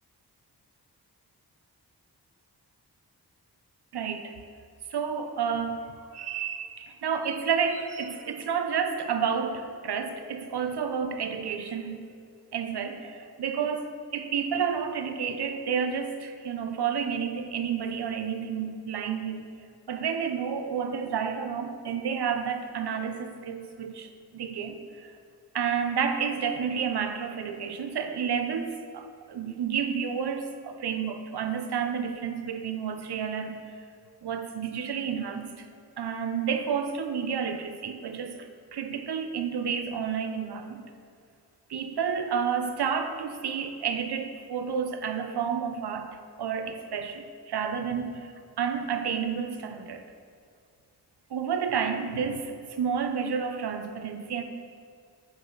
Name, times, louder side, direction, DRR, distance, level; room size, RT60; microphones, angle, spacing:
voice 1, 3.9-4.3 4.9-12.0 12.5-19.4 19.9-25.1 25.5-33.6 34.2-35.6 36.0-38.5 38.7-40.8 41.7-46.1 46.4-50.0 51.3-54.4, right 7 dB, 70° right, 7 dB, 0.7 m, -30 dB
7.5 x 5.1 x 4.0 m, 2.3 s
cardioid pair, 45°, 41 cm